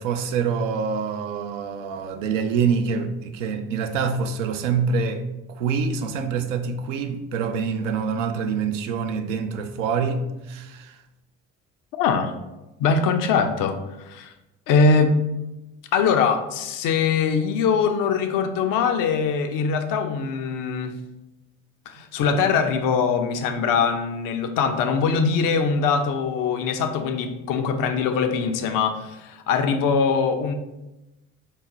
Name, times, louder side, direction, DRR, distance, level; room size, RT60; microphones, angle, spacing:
voice 1, 0.0-11.0, right 5 dB, 85° right, 0.5 m, -26 dB
voice 2, 11.9-12.3 12.8-14.3 14.7-15.2 15.9-21.0 21.9-30.5, left 5 dB, 60° left, 0.5 m, -22 dB
5.6 x 2.1 x 3.8 m
hypercardioid pair, 55°, 37 cm